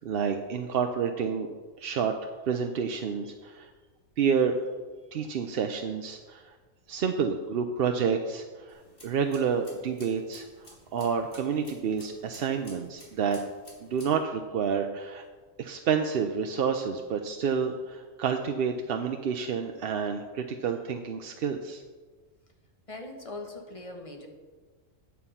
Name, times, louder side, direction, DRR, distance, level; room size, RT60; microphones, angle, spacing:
voice 1, 0.0-1.5 1.8-3.7 4.2-4.6 5.1-6.5 6.9-13.4 13.8-15.2 15.6-21.8, right 6 dB, 55° right, 5 dB, 0.7 m, -29 dB
sound 1, 8.7-14.1, left 1 dB, 45° left, 2.7 m, -53 dB
voice 2, 22.9-24.3, left 2 dB, 25° left, 3 dB, 1.2 m, -41 dB
9.7 x 7.1 x 5.6 m, 1.4 s
omnidirectional pair, 1.4 m